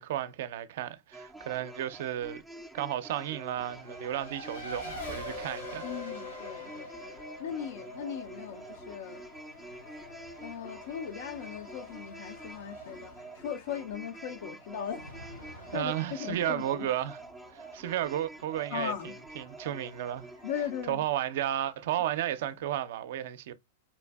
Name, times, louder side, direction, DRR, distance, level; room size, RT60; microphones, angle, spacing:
voice 1, 0.0-2.4 2.7-5.9 15.7-17.2 17.5-20.3 20.9-23.5, right 12 dB, 65° right, 0.4 m, -33 dB
sound 1, 1.1-20.9, right 2 dB, 5° right, 0.4 m, -47 dB
Race car auto racing, 3.5-22.7, left 1 dB, 85° left, 2.2 m, -47 dB
voice 2, 5.8-6.9 7.4-9.2 10.4-15.0 15.7-16.9 18.7-19.1 20.4-21.0, left 8 dB, 65° left, 0.4 m, -38 dB
4.2 x 2.5 x 2.2 m
hypercardioid pair, 120°, 0 cm